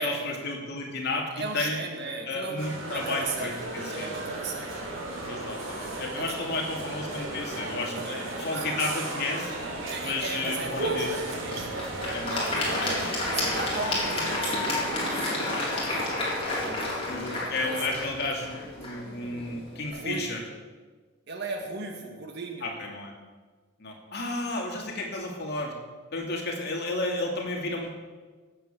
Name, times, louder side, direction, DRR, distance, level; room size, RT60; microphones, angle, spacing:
voice 1, 0.0-1.8 2.3-4.2 5.3-9.5 10.0-11.1 12.1-12.9 17.1-20.4 22.6-23.1 23.8-25.7 26.1-27.9, left 2 dB, 50° left, 0 dB, 2.7 m, -32 dB
voice 2, 1.3-4.9 5.9-6.3 7.9-8.7 9.8-11.9 12.3-13.0 13.3-15.4 15.8-16.0 16.4-18.0 19.9-20.3 21.3-22.7, right 3 dB, 50° right, 3 dB, 1.8 m, -37 dB
sound 1, 2.6-15.7, right 2 dB, 65° right, 3.6 m, -35 dB
Applause / Crowd, 10.8-19.8, left 2 dB, 25° left, 4.1 m, -31 dB
17.0 x 8.4 x 6.9 m, 1.4 s
head